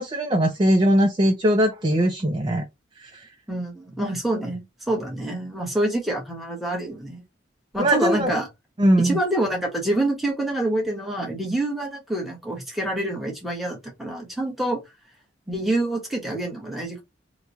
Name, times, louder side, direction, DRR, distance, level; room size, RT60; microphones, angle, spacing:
voice 1, 0.0-2.6 3.0-3.2 7.8-8.3 8.8-9.2, equal, 25° right, 0.4 m, -20 dB
voice 2, 3.5-7.2 7.7-8.5 9.0-14.8 15.5-17.0, right 1 dB, ahead, 1.1 m, -26 dB
2.9 x 2.3 x 3.8 m
head